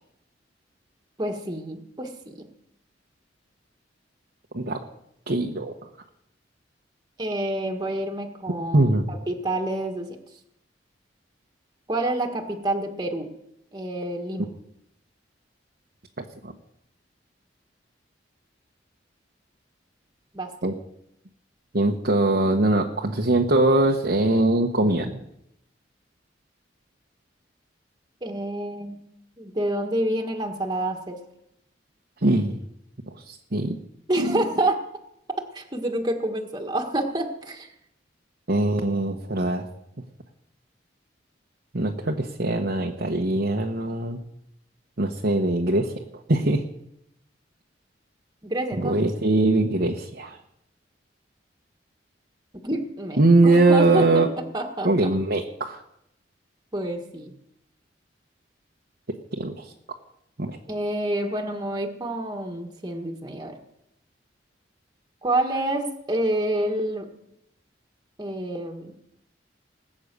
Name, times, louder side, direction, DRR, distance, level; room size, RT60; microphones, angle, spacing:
voice 1, 1.2-2.5 7.2-10.1 11.9-13.3 13.7-14.5 20.3-20.7 28.2-29.0 29.4-31.2 34.1-34.8 35.5-37.7 48.4-49.1 52.6-54.2 54.5-54.9 56.7-57.3 60.7-63.6 65.2-67.1 68.2-68.9, right 1 dB, 20° right, 2 dB, 1.7 m, -28 dB
voice 2, 5.3-5.7 8.7-9.1 16.2-16.5 20.6-20.7 21.7-25.2 32.2-32.6 33.1-33.8 34.2-34.4 38.5-39.7 41.7-44.2 45.0-45.9 46.3-46.6 48.8-50.4 53.2-54.3 54.8-55.8 59.3-59.7 60.4-60.6, right 2 dB, 60° right, 1 dB, 1.2 m, -22 dB
20.0 x 8.7 x 6.8 m, 0.80 s
head